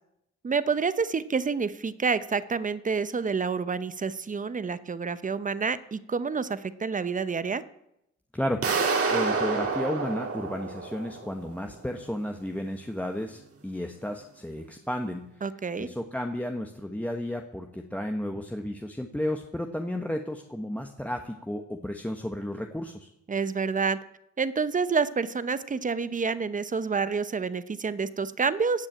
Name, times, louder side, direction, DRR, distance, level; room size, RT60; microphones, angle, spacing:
voice 1, 0.4-7.6 15.4-15.9 23.3-24.0 24.4-28.9, right 5 dB, 25° right, 15 dB, 0.8 m, -28 dB
voice 2, 8.3-15.3 15.8-23.1, left 1 dB, 5° left, 4 dB, 1.1 m, -33 dB
sound 1, 8.6-11.5, right 4 dB, 50° right, 2.5 m, -28 dB
16.0 x 6.2 x 9.0 m, 0.82 s
cardioid pair, 90°, 30 cm